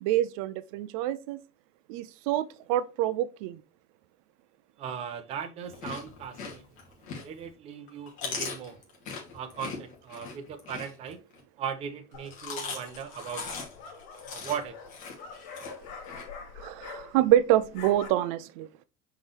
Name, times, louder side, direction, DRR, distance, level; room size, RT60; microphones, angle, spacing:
voice 1, 0.0-1.4 1.9-3.6 16.6-18.7, right 13 dB, 80° right, 0.5 m, -26 dB
voice 2, 4.8-6.6 7.1-8.8 9.3-11.2 11.6-13.6 14.2-14.8, right 7 dB, 35° right, 1.2 m, -38 dB
Chewing mastication, 5.6-7.5 7.9-11.4 12.1-16.2, left 4 dB, 45° left, 2.7 m, -39 dB
sound 1, 12.1-12.6 13.5-17.4 17.6-18.1, left 5 dB, 75° left, 3.7 m, -44 dB
6.3 x 5.7 x 3.3 m
cardioid pair, 170°, 17 cm